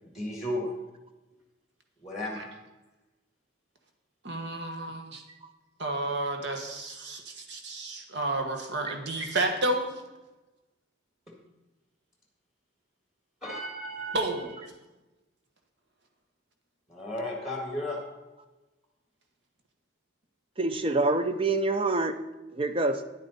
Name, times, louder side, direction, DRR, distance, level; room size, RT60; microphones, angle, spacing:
voice 1, 0.0-0.7 2.0-2.4 13.4-14.2 16.9-18.0, left 1 dB, 5° right, -1 dB, 1.9 m, -34 dB
voice 2, 4.2-5.2 5.8-10.0 14.1-14.7, right 2 dB, 65° right, 3 dB, 1.3 m, -31 dB
voice 3, 20.6-22.2 22.5-23.0, right 2 dB, 30° right, 8 dB, 0.6 m, -26 dB
10.0 x 9.2 x 4.1 m, 1.1 s
head